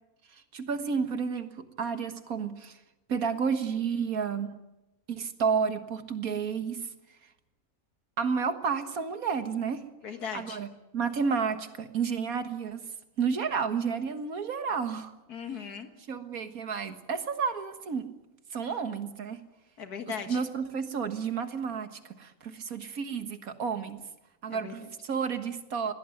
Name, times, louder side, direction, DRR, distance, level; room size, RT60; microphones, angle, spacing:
voice 1, 0.5-2.7 3.1-4.5 5.1-6.8 8.2-9.8 10.3-10.7 10.9-12.8 13.2-15.1 16.1-18.1 18.5-19.4 20.3-24.0 24.4-25.9, right 6 dB, 70° right, 9 dB, 2.0 m, -31 dB
voice 2, 10.0-10.6 15.3-15.9 19.8-20.4 24.5-24.9, left 7 dB, 90° left, 6 dB, 2.1 m, -38 dB
21.5 x 17.5 x 9.2 m, 0.98 s
omnidirectional pair, 1.6 m